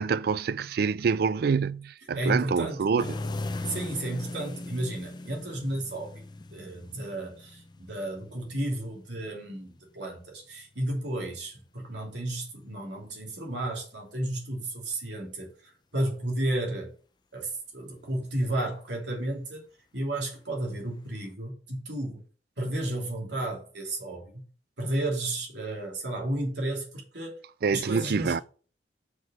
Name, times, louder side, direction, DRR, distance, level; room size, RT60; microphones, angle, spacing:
voice 1, 0.0-3.2 27.6-28.4, right 5 dB, 55° right, 0.3 m, -26 dB
voice 2, 2.1-2.8 3.7-6.2 6.5-15.5 15.9-16.9 17.3-19.6 19.9-22.2 22.6-24.5 24.8-27.3 27.7-28.3, right 1 dB, 80° right, 2.7 m, -32 dB
sound 1, 3.0-10.7 12.4-12.8 21.2-21.3, left 2 dB, 25° left, 0.5 m, -39 dB
6.1 x 4.9 x 5.4 m
head